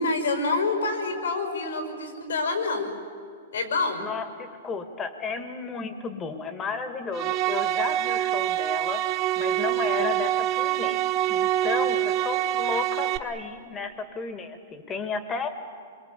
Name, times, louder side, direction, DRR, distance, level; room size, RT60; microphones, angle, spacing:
voice 1, 0.0-2.9 3.5-4.1, left 3 dB, 90° left, 5 dB, 5.7 m, -27 dB
voice 2, 4.0-9.0 9.4-11.0 11.3-15.5, left 5 dB, 20° left, 8 dB, 1.9 m, -33 dB
sound 1, 7.1-13.2, right 13 dB, 30° right, 0.9 m, -25 dB
26.0 x 23.0 x 8.4 m, 2.1 s
hypercardioid pair, 150°, 0 cm